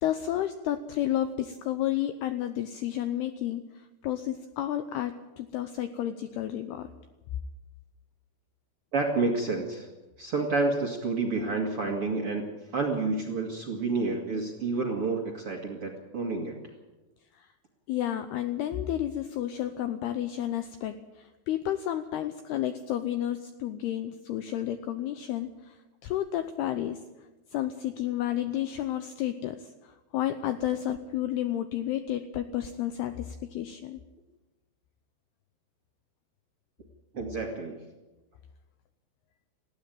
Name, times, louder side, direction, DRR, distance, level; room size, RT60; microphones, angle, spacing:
voice 1, 0.0-6.9 17.3-17.5 17.9-27.0 27.5-34.0, left 12 dB, 85° left, 9 dB, 2.3 m, -31 dB
voice 2, 8.9-9.9 10.2-12.5 12.7-16.6 37.1-37.8, right 3 dB, 50° right, 1 dB, 1.7 m, -29 dB
19.5 x 15.0 x 9.0 m, 1.2 s
omnidirectional pair, 5.6 m